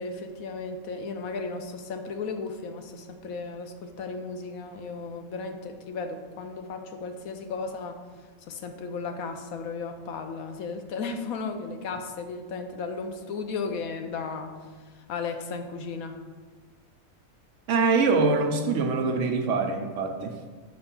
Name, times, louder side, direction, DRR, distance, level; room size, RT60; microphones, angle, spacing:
voice 1, 0.0-8.0 8.5-14.7 14.9-16.2, left 4 dB, 80° left, 6 dB, 1.1 m, -35 dB
voice 2, 17.7-20.3, right 4 dB, 65° right, 5 dB, 0.9 m, -24 dB
6.3 x 4.4 x 5.8 m, 1.4 s
omnidirectional pair, 1.5 m